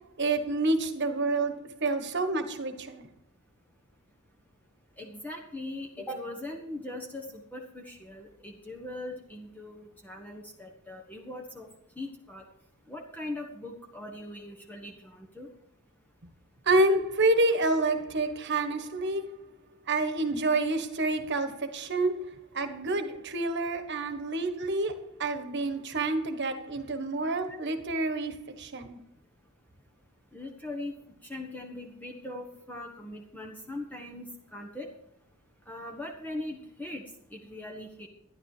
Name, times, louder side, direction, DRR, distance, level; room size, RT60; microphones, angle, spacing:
voice 1, 0.2-3.1 16.7-19.4 19.9-29.0, right 2 dB, 55° right, 1.4 m, -28 dB
voice 2, 5.0-11.7 11.9-12.4 12.9-15.5 27.5-27.6 30.3-30.9 31.2-34.9 35.7-37.0 37.3-38.1, left 1 dB, 10° left, 1.2 m, -40 dB
12.5 x 11.0 x 4.9 m
head